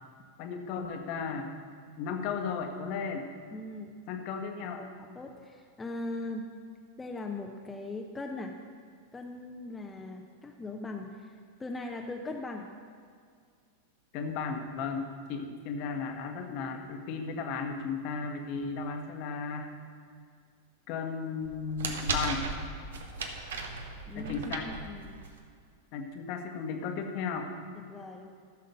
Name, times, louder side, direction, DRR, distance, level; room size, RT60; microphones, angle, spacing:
voice 1, 0.4-1.5 2.0-3.3 4.1-4.8 14.1-19.7 20.9-22.5 24.1-24.7 25.9-27.5, left 5 dB, 45° left, 4 dB, 1.2 m, -35 dB
voice 2, 3.5-4.0 4.8-6.5 7.0-8.6 9.1-12.7 24.1-25.2 27.9-28.3, left 2 dB, 10° left, 2 dB, 0.7 m, -40 dB
sound 1, 21.4-25.4, right 3 dB, 65° right, 1.0 m, -36 dB
14.0 x 6.5 x 5.3 m, 2.1 s
figure-of-eight pair, 90°, 0 cm